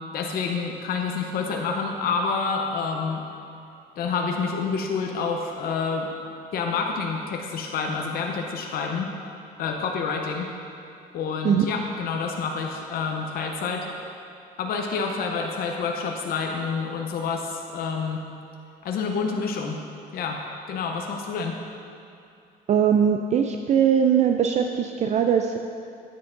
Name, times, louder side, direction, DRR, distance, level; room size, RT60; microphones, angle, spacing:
voice 1, 0.1-3.2 4.0-6.1 6.5-9.1 9.6-10.5 11.1-13.9 14.6-18.2 18.8-19.8 20.1-20.4 20.7-21.6, left 5 dB, 60° left, 1 dB, 0.8 m, -28 dB
voice 2, 22.7-25.6, right 8 dB, 45° right, 4 dB, 0.4 m, -21 dB
9.5 x 9.4 x 2.6 m, 2.7 s
cardioid pair, 110°, 17 cm